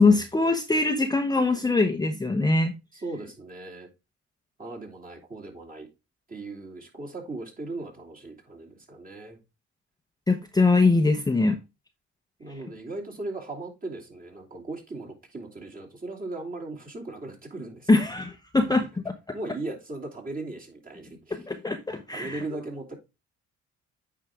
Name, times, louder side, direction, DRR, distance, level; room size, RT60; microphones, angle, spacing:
voice 1, 0.0-2.7 10.3-11.6 17.9-18.8 21.5-22.4, left 3 dB, 15° left, 0.8 m, -22 dB
voice 2, 2.9-3.9 4.6-5.9 6.3-9.4 12.4-17.9 18.7-18.8 19.3-21.5 22.1-23.0, right 2 dB, 30° right, 2.8 m, -38 dB
8.9 x 4.9 x 3.6 m
cardioid pair, 90°, 30 cm